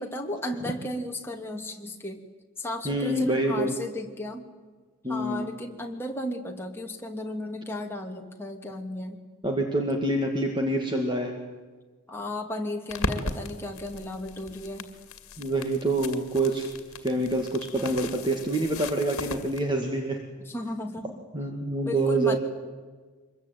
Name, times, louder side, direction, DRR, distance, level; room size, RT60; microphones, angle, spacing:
voice 1, 0.0-2.2 2.6-4.5 5.1-9.2 12.1-14.9 20.5-21.2 21.8-22.4, left 1 dB, 10° left, 1 dB, 2.7 m, -34 dB
voice 2, 2.8-3.7 5.0-5.5 9.4-11.4 15.4-16.7 17.0-20.2 21.3-22.4, right 2 dB, 20° right, 3 dB, 2.2 m, -26 dB
sound 1, 12.9-19.6, left 3 dB, 70° left, 2.3 m, -37 dB
25.0 x 21.5 x 9.4 m, 1.4 s
head